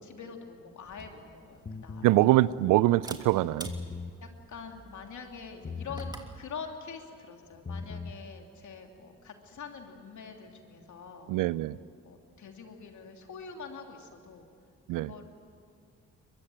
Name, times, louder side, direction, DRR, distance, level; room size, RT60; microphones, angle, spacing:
voice 1, 0.0-2.2 4.2-11.4 12.0-14.5 14.9-15.2, left 5 dB, 65° left, 3 dB, 3.0 m, -45 dB
Camera, 0.8-6.4, right 1 dB, 15° right, 2.9 m, -49 dB
sound 1, 1.7-2.1 3.5-4.2 5.6-6.2 7.5-8.2, left 4 dB, 30° left, 1.3 m, -39 dB
voice 2, 2.0-3.7 11.3-11.8 14.9-15.1, right 17 dB, 85° right, 20 dB, 0.5 m, -24 dB
23.0 x 21.5 x 7.8 m, 2.3 s
supercardioid pair, 55°, 31 cm